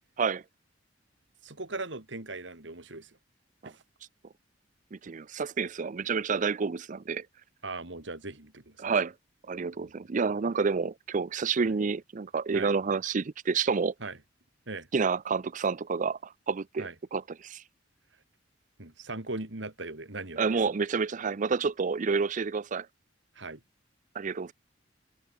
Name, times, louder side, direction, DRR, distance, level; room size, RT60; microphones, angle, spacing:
voice 1, 1.4-3.1 3.6-3.8 7.6-8.9 9.8-9.9 12.5-12.7 14.0-14.2 14.7-14.9 16.8-16.9 18.8-20.6 23.4-23.6, right 2 dB, 70° right, 2.9 m, -39 dB
voice 2, 4.9-7.3 8.8-9.1 9.5-13.9 14.9-17.6 20.4-22.9 24.1-24.5, right 5 dB, 45° right, 0.5 m, -29 dB
head